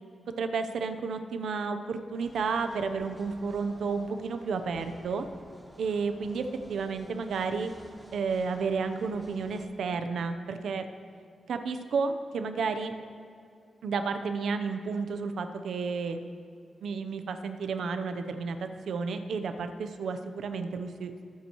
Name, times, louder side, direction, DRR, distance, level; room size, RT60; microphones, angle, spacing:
voice 1, 0.4-5.2 5.8-7.7 8.1-10.8 11.5-12.9 13.8-16.2 16.8-21.2, right 5 dB, 85° right, 7 dB, 0.8 m, -32 dB
sound 1, 2.2-9.6, equal, 10° right, 1.6 m, -53 dB
22.0 x 8.5 x 3.1 m, 2.4 s
cardioid pair, 85°, 0 cm